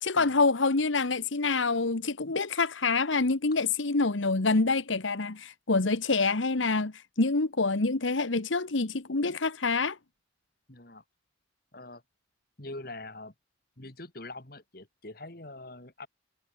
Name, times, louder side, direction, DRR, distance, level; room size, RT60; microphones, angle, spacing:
voice 1, 0.0-10.0, left 3 dB, 85° left, 1.3 m, -26 dB
voice 2, 10.7-11.0 11.7-12.0 12.6-13.3 13.8-16.1, left 2 dB, 50° left, 2.8 m, -44 dB
head